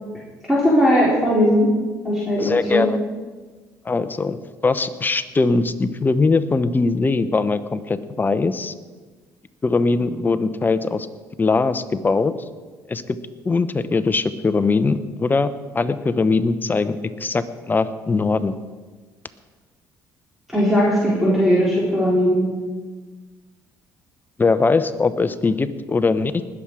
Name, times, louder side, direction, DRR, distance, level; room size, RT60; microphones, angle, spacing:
voice 1, 0.5-1.7 2.0-2.8 20.5-22.5, equal, 5° right, -7 dB, 4.4 m, -18 dB
voice 2, 2.4-3.0 3.8-8.7 9.6-11.1 11.4-12.3 12.9-13.2 13.4-18.6 24.4-26.3, left 3 dB, 25° left, 12 dB, 0.8 m, -21 dB
20.0 x 7.4 x 4.9 m, 1.4 s
supercardioid pair, 80°, 8 cm